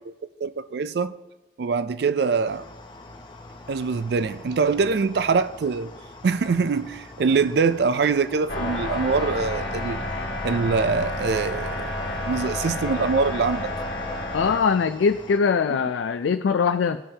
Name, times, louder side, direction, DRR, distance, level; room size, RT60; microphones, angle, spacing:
voice 1, 0.4-1.1 1.6-2.7 3.7-5.9 6.2-10.0 10.4-13.7, right 4 dB, 60° right, 0.4 m, -24 dB
sound 1, 2.5-15.4, left 2 dB, 25° left, 0.7 m, -44 dB
sound 2, 8.5-14.6, left 1 dB, 60° left, 1.5 m, -30 dB
voice 2, 14.3-17.0, left 5 dB, 80° left, 0.4 m, -22 dB
15.0 x 5.5 x 2.8 m
head